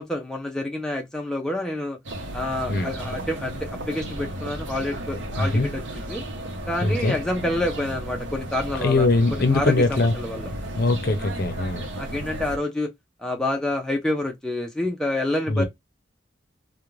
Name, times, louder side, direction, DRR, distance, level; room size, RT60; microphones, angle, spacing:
voice 1, 0.0-2.0 2.3-6.2 6.7-10.5 12.0-12.9 13.2-15.7, left 1 dB, 5° left, 0.4 m, -28 dB
sound 1, 2.0-12.6, right 1 dB, 75° right, 0.7 m, -34 dB
voice 2, 5.4-5.7 6.8-7.1 8.8-10.2 10.8-11.9 15.5-15.7, left 2 dB, 55° left, 0.6 m, -21 dB
2.4 x 2.1 x 3.0 m
head